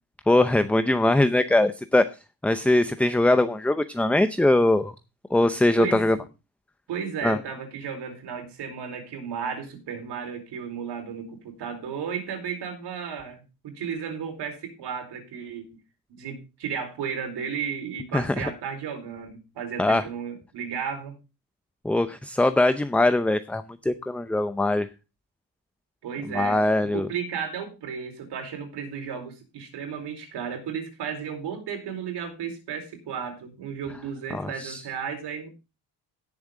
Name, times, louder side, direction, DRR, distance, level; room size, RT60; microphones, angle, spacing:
voice 1, 0.3-2.0 2.4-4.9 5.3-6.2 7.2-7.4 18.1-18.5 19.8-20.0 21.8-24.9 26.3-27.1 34.3-34.8, left 1 dB, 5° left, 10 dB, 0.6 m, -21 dB
voice 2, 5.8-6.2 6.9-15.7 16.1-21.1 26.0-35.5, right 7 dB, 85° right, 4 dB, 4.5 m, -34 dB
17.5 x 7.2 x 3.7 m, 0.28 s
cardioid pair, 125°, 40 cm